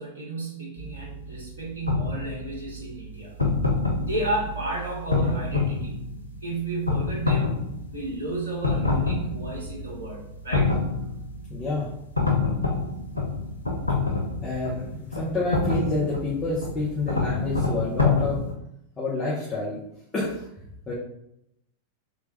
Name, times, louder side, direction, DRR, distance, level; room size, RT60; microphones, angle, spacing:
voice 1, 0.0-3.3 4.0-6.0 6.4-7.6 7.9-10.8, right 2 dB, 70° right, -2 dB, 1.0 m, -32 dB
sound 1, 0.8-18.5, left 3 dB, 85° left, 0.5 m, -27 dB
voice 2, 11.5-11.9 14.4-18.4 19.0-19.8 20.1-20.5 20.9-21.0, left 2 dB, 20° left, -6 dB, 1.0 m, -28 dB
3.2 x 3.1 x 3.1 m, 0.80 s
figure-of-eight pair, 90°, 0 cm